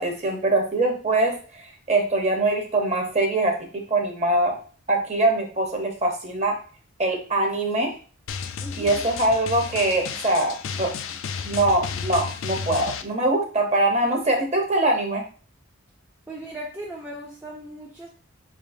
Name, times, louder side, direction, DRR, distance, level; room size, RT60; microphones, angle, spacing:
voice 1, 0.0-4.5 4.9-6.6 7.0-7.9 8.7-10.9 11.5-15.2, right 2 dB, 30° right, 2 dB, 0.9 m, -23 dB
Drum, 8.3-13.0, left 6 dB, 65° left, 0.4 m, -32 dB
voice 2, 8.6-9.1 16.3-18.1, right 1 dB, 10° right, -2 dB, 0.4 m, -37 dB
4.9 x 3.6 x 2.6 m, 0.40 s
head